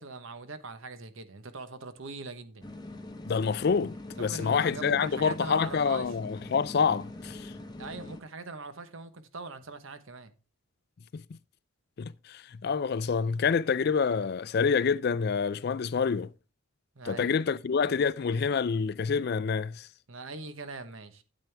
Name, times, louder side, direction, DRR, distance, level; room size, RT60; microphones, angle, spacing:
voice 1, 0.0-2.7 4.2-6.1 7.8-10.3 16.9-17.4 20.1-21.2, right 3 dB, 65° right, 1.0 m, -42 dB
sound 1, 2.6-8.2, left 2 dB, 20° left, 0.8 m, -43 dB
voice 2, 3.2-7.5 11.1-11.2 12.0-16.3 17.1-19.9, left 6 dB, 45° left, 0.3 m, -27 dB
9.0 x 8.9 x 3.4 m
head